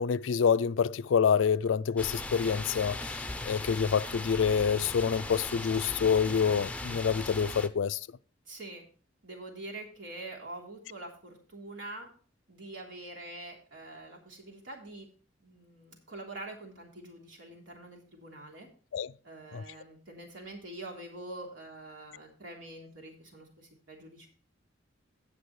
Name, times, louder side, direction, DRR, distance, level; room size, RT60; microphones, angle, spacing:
voice 1, 0.0-8.0 18.9-19.1 19.5-19.6, left 6 dB, 80° left, 0.4 m, -27 dB
sound 1, 2.0-7.7, left 2 dB, 5° left, 0.5 m, -38 dB
voice 2, 8.5-8.8 9.2-12.1 12.5-15.1 15.4-18.7 19.2-24.3, right 2 dB, 85° right, 3.2 m, -45 dB
17.5 x 6.0 x 3.2 m
head